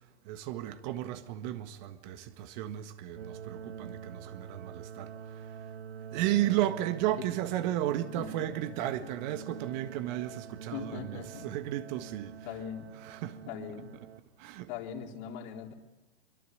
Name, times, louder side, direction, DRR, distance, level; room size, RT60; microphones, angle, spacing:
voice 1, 0.2-5.5 6.1-12.6 12.9-13.4 14.4-14.7, right 13 dB, 45° right, 1.7 m, -34 dB
sound 1, 3.1-14.2, right 7 dB, 85° right, 1.3 m, -46 dB
voice 2, 8.2-8.9 10.7-11.5 12.4-12.9 13.5-13.9 14.7-15.7, left 8 dB, 50° left, 3.9 m, -41 dB
24.0 x 22.5 x 9.3 m
hypercardioid pair, 125°, 32 cm